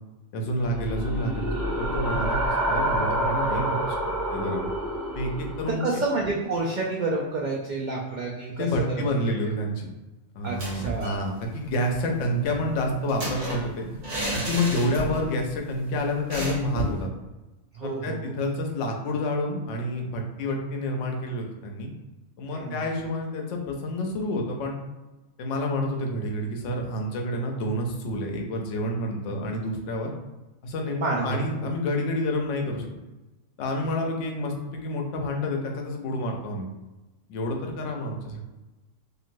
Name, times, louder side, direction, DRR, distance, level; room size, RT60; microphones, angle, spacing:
voice 1, 0.3-4.0 4.3-4.7 5.1-6.0 8.6-9.9 10.3-13.8 14.3-17.1 17.8-21.9 22.4-24.8 25.4-30.1 30.6-32.9 33.6-36.7 37.3-38.5, left 1 dB, 70° left, 1 dB, 0.9 m, -29 dB
sound 1, 0.6-5.7, right 1 dB, 20° left, 1.0 m, -28 dB
voice 2, 5.8-8.9 9.2-9.3 10.4-11.2 14.7-14.9 17.7-18.2 22.5-22.8 31.0-31.4, right 3 dB, 85° right, -3 dB, 0.4 m, -29 dB
sound 2, 10.4-11.2 11.5-11.6 11.9-15.4 15.6-15.8 16.3-17.0, equal, 40° right, 0.9 m, -33 dB
3.0 x 2.5 x 2.5 m, 1.1 s
omnidirectional pair, 1.3 m